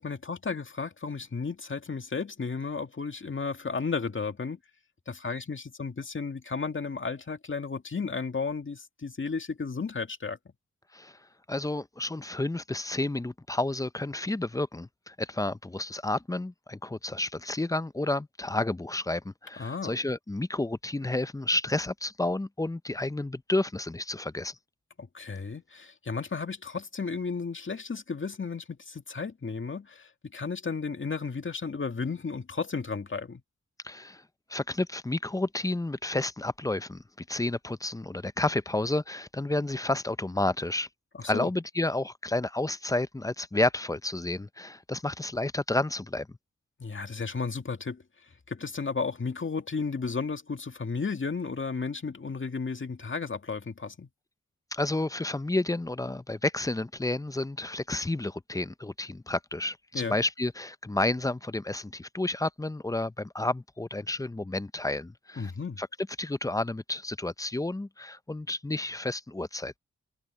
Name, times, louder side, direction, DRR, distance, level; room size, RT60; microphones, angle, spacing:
voice 1, 0.0-4.6 5.1-10.4 19.6-19.9 25.0-33.4 41.2-41.5 46.8-48.0 48.5-54.1 59.9-60.2 65.4-65.8, left 4 dB, 40° left, 2.1 m, -33 dB
voice 2, 11.5-24.6 33.8-34.2 34.5-40.9 41.2-46.3 54.7-65.5 65.8-65.9 66.2-69.7, left 2 dB, 10° left, 0.6 m, -31 dB
cardioid pair, 70°, 29 cm